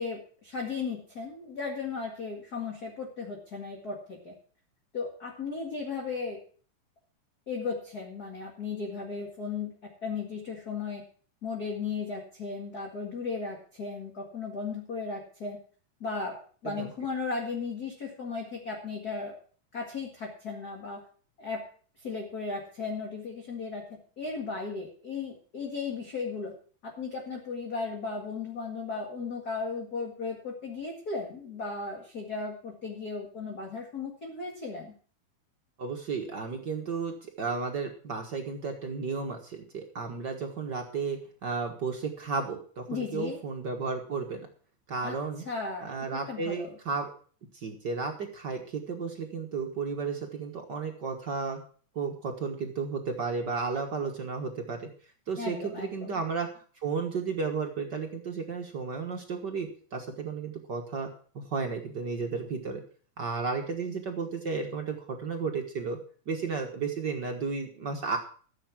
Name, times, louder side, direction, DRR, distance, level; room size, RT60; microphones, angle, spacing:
voice 1, 0.0-4.3 4.9-6.4 7.5-9.7 10.0-11.0 11.4-15.6 16.0-19.3 19.7-21.0 21.4-21.6 22.0-26.5 26.8-34.9 42.9-43.4 45.0-45.2 45.5-46.7 55.4-56.2, left 4 dB, 35° left, 1 dB, 2.0 m, -36 dB
voice 2, 35.8-44.5 44.9-45.4 45.8-47.1 47.5-51.6 51.9-54.9 55.3-61.1 61.3-62.8 63.2-66.0 66.3-68.2, right 4 dB, 50° right, 3 dB, 1.4 m, -33 dB
14.0 x 7.8 x 6.0 m, 0.43 s
omnidirectional pair, 3.7 m